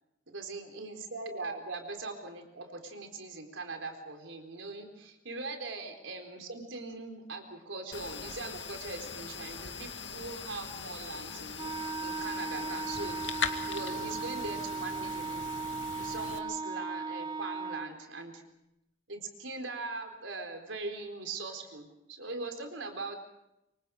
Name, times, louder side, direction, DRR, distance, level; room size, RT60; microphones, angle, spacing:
voice 1, 0.3-11.7 12.0-15.4 16.0-18.4 19.1-23.2, right 3 dB, 85° right, 4 dB, 4.2 m, -41 dB
sound 1, 7.9-16.4, left 6 dB, 75° left, 2.1 m, -40 dB
Wind instrument woodwind instrument, 11.6-17.9, right 4 dB, 25° right, 0.9 m, -37 dB
27.5 x 24.5 x 5.0 m, 0.87 s
head